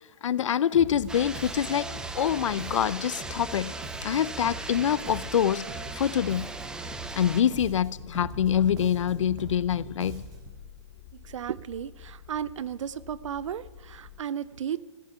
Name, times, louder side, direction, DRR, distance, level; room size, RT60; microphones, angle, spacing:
voice 1, 0.2-1.9 2.1-3.7 4.0-5.7 6.0-6.5 7.2-10.2, left 9 dB, 85° left, 0.5 m, -25 dB
Bass guitar, 0.7-10.6, right 4 dB, 25° right, 1.5 m, -42 dB
sound 1, 1.0-14.2, left 9 dB, 35° left, 0.9 m, -50 dB
sound 2, 1.1-7.4, right 2 dB, 5° right, 0.5 m, -39 dB
voice 2, 11.2-14.8, right 9 dB, 80° right, 0.5 m, -34 dB
14.5 x 6.7 x 9.2 m
hypercardioid pair, 150°, 16 cm